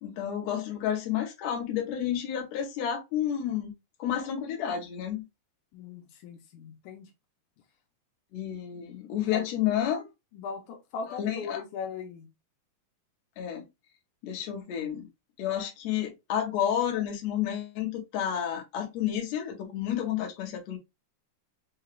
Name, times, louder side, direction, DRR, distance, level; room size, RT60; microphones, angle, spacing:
voice 1, 0.0-3.7 4.0-5.2 8.3-10.1 11.2-11.6 13.4-13.6 14.2-15.1 15.4-20.8, left 10 dB, 65° left, 2.1 m, -30 dB
voice 2, 5.7-7.1 9.3-9.7 10.3-12.3, left 5 dB, 85° left, 2.2 m, -39 dB
5.7 x 2.4 x 3.2 m
omnidirectional pair, 3.6 m